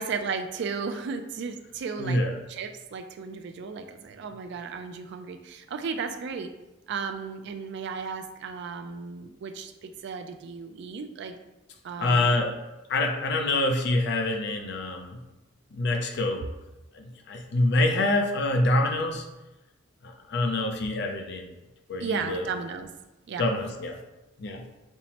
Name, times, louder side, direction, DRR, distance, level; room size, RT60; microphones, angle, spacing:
voice 1, 0.0-2.2 2.5-6.5 6.9-11.4 11.8-12.4 22.0-22.9 23.3-23.5, right 5 dB, 60° right, 7 dB, 0.3 m, -34 dB
voice 2, 2.0-2.3 12.0-12.6 12.9-15.2 15.7-16.5 17.3-19.2 20.3-21.5 21.9-22.4 23.4-24.0 24.4-24.6, left 2 dB, 60° left, 4 dB, 0.4 m, -25 dB
5.4 x 2.0 x 2.8 m, 1.0 s
head